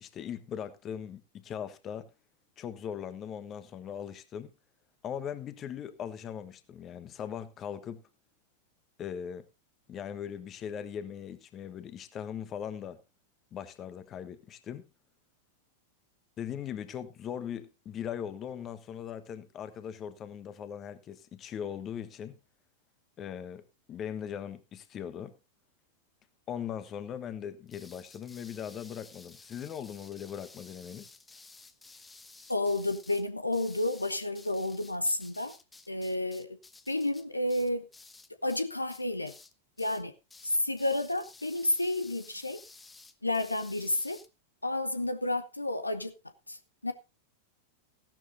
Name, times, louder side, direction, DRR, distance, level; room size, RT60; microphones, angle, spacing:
voice 1, 0.0-2.1 2.6-4.5 5.0-8.0 9.0-9.4 9.9-13.0 13.5-14.8 16.4-22.4 23.2-25.3 26.5-31.1, left 8 dB, 30° left, 1.2 m, -39 dB
sound 1, 27.7-38.6 38.9-39.5 39.8-40.0 40.3-44.3, left 3 dB, 10° left, 1.0 m, -54 dB
voice 2, 32.5-35.5 35.9-36.6 36.9-37.9 38.4-39.3 39.8-40.1 40.4-42.6 43.2-44.2 44.6-46.1 46.5-46.9, left 1 dB, 85° left, 0.9 m, -31 dB
16.0 x 12.0 x 2.6 m
figure-of-eight pair, 90°, 0 cm